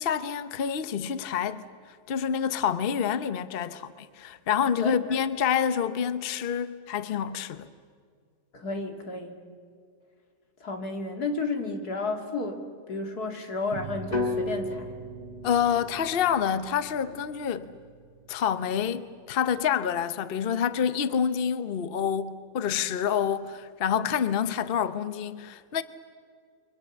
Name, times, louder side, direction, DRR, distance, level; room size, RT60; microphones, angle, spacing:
voice 1, 0.0-7.7 15.4-17.7 18.3-25.8, left 8 dB, 45° left, 0.9 m, -27 dB
voice 2, 8.5-9.4 10.6-14.9, left 3 dB, 85° left, 2.9 m, -32 dB
sound 1, 13.7-18.8, right 4 dB, 70° right, 1.9 m, -46 dB
sound 2, 14.1-18.2, left 2 dB, 25° left, 2.2 m, -35 dB
29.0 x 24.0 x 7.1 m
omnidirectional pair, 1.6 m